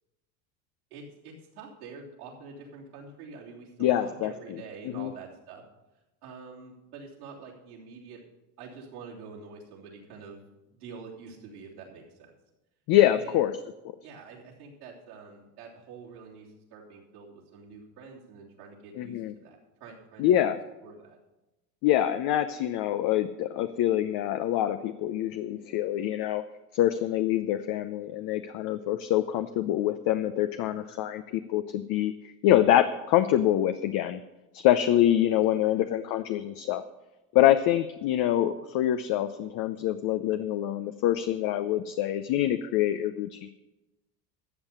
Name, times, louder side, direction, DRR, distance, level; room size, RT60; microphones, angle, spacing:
voice 1, 0.9-5.6 6.2-8.2 8.6-12.3 13.1-13.5 14.0-20.4 20.8-21.2 35.5-35.7, right 4 dB, 85° right, -5 dB, 3.4 m, -46 dB
voice 2, 3.8-4.6 5.0-5.1 12.9-13.5 19.0-19.3 20.2-20.6 21.8-26.4 26.7-32.1 32.4-34.2 34.5-36.8 37.3-43.5, left 12 dB, 55° left, 10 dB, 0.8 m, -25 dB
13.0 x 7.3 x 6.6 m, 1.0 s
hypercardioid pair, 85°, 44 cm